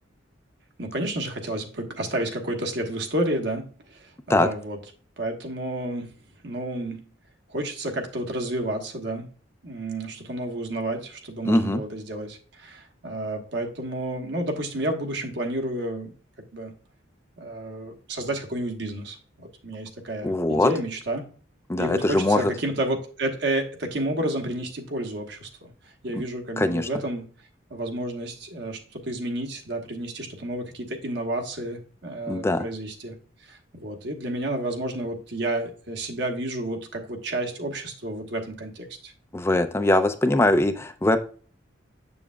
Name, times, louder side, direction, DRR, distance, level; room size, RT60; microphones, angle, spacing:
voice 1, 0.8-4.8 5.2-6.1 6.4-7.0 7.5-9.3 9.6-16.1 16.5-16.7 17.4-21.2 21.8-25.7 26.0-27.2 27.7-33.2 33.4-39.1, right 1 dB, 65° right, 4 dB, 1.3 m, -31 dB
voice 2, 11.4-11.8 20.2-20.7 21.7-22.5 26.1-26.2 26.6-26.9 32.3-32.7 39.3-41.2, left 1 dB, 15° left, 9 dB, 0.4 m, -21 dB
7.2 x 7.0 x 2.3 m, 0.41 s
head